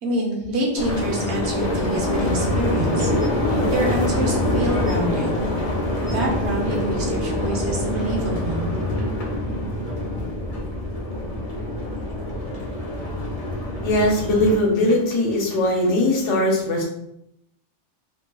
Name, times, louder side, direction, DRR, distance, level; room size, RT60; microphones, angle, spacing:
voice 1, 0.0-3.1 3.4-5.5 6.0-8.7, right 1 dB, 65° right, -2 dB, 1.0 m, -27 dB
sound 1, 0.8-14.6, left 1 dB, 40° left, 0.5 m, -25 dB
voice 2, 13.8-16.8, left 1 dB, 75° left, -1 dB, 1.1 m, -20 dB
2.8 x 2.2 x 2.9 m, 0.78 s
omnidirectional pair, 1.2 m